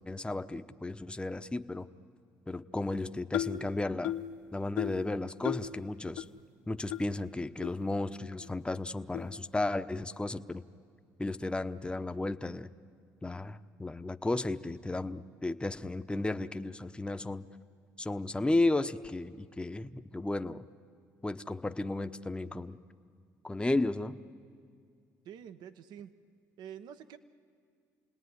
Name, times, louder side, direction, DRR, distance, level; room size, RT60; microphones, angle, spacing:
voice 1, 0.1-1.9 2.5-4.1 4.5-6.2 6.7-10.6 11.2-12.7 13.2-17.5 18.0-20.6 21.2-22.8 23.4-24.2, left 2 dB, 15° left, 10 dB, 0.9 m, -34 dB
sound 1, 3.3-3.6 4.0-4.3 4.8-5.0 5.4-5.7 6.2-6.3 6.9-7.0 7.6-7.7 8.4-8.5 9.1-9.3, left 12 dB, 90° left, 0.7 m, -34 dB
voice 2, 25.2-26.1 26.6-27.2, right 9 dB, 70° right, 11 dB, 1.0 m, -47 dB
28.5 x 19.0 x 9.8 m, 2.3 s
hypercardioid pair, 55°, 7 cm